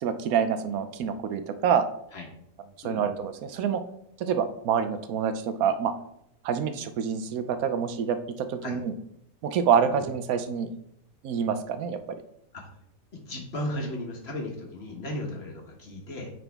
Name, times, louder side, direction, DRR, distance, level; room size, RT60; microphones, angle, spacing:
voice 1, 0.0-1.9 2.8-3.8 4.2-5.9 6.4-8.9 9.4-10.7 11.2-12.0, right 7 dB, 80° right, 9 dB, 1.1 m, -27 dB
voice 2, 13.1-16.3, left 1 dB, 50° left, 1 dB, 1.5 m, -35 dB
9.3 x 3.9 x 3.4 m, 0.75 s
omnidirectional pair, 1.5 m